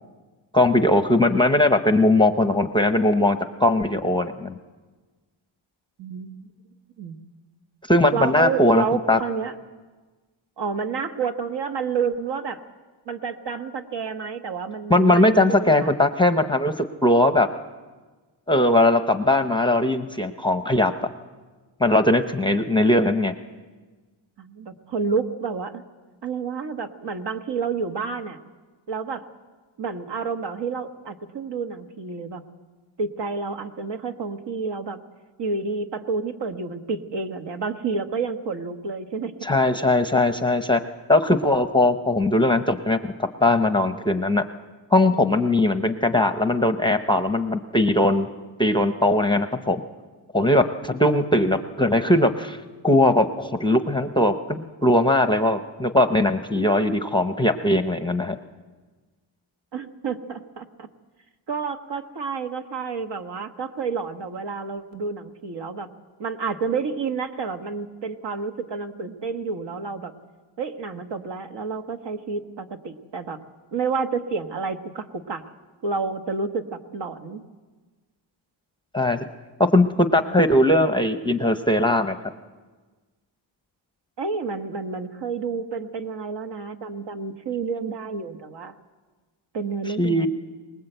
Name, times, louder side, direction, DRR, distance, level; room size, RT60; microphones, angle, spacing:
voice 1, 0.5-4.5 7.9-9.2 14.9-16.7 17.0-17.5 18.5-20.9 21.8-23.3 39.4-40.8 41.1-43.1 43.4-44.4 44.9-48.3 48.6-49.8 50.3-52.6 52.8-58.4 78.9-79.2 79.7-82.2 90.0-90.3, left 1 dB, 10° left, 8 dB, 0.7 m, -20 dB
voice 2, 6.0-6.5 7.0-7.2 8.1-9.5 10.6-12.6 13.1-15.9 24.4-25.8 26.2-28.4 28.9-29.2 29.8-32.4 33.0-35.0 35.4-39.3 59.7-60.9 61.5-65.9 66.2-70.1 70.6-73.4 73.7-75.4 75.8-77.4 84.2-88.7 89.5-90.3, right 5 dB, 60° right, 6 dB, 1.4 m, -29 dB
23.5 x 20.0 x 8.0 m, 1.3 s
wide cardioid pair, 140°, 48 cm